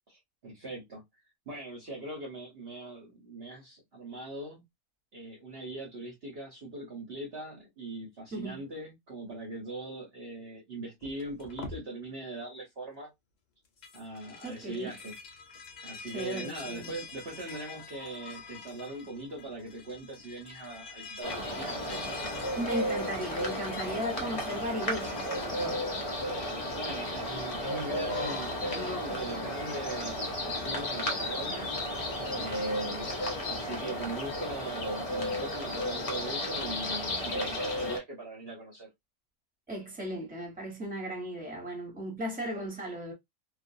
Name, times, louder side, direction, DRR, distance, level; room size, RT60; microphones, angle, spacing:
voice 1, 0.1-1.0 1.5-4.6 5.1-13.1 13.9-15.1 15.8-22.0 26.7-31.7 32.3-33.1 33.4-38.9, right 2 dB, 50° right, 1.0 m, -41 dB
voice 2, 8.3-8.6 14.4-14.9 16.1-16.9 22.6-25.9 39.7-43.1, equal, 5° right, 1.0 m, -36 dB
sound 1, 11.0-11.8 13.6-25.8, left 4 dB, 80° left, 0.4 m, -46 dB
sound 2, 21.2-38.0, left 1 dB, 35° left, 0.6 m, -33 dB
2.4 x 2.3 x 2.5 m
omnidirectional pair, 1.5 m